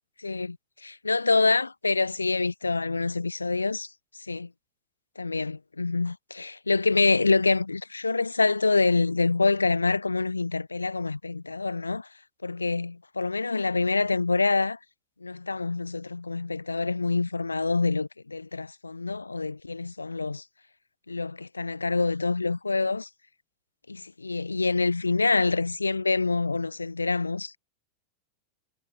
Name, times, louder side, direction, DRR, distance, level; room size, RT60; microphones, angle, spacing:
voice 1, 0.2-0.6 0.8-3.9 4.3-4.5 5.2-12.1 12.4-14.8 15.2-20.4 21.1-23.1 23.9-27.6, left 3 dB, 80° left, 0.3 m, -26 dB
figure-of-eight pair, 90°, 0 cm